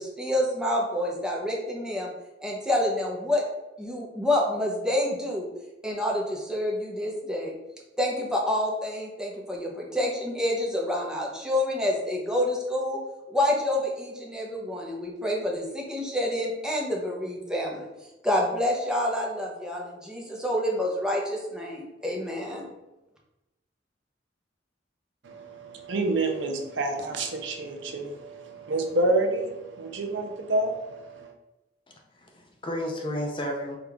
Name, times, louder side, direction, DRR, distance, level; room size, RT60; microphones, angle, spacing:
voice 1, 0.0-2.1 2.4-3.4 3.8-5.5 5.8-7.5 8.0-13.0 13.3-17.9 18.2-22.7, left 1 dB, 5° right, -2 dB, 0.8 m, -28 dB
voice 2, 25.2-31.3, right 2 dB, 80° right, 4 dB, 0.6 m, -28 dB
voice 3, 31.9-33.8, equal, 25° left, 1 dB, 0.6 m, -33 dB
4.8 x 2.5 x 3.4 m, 0.98 s
head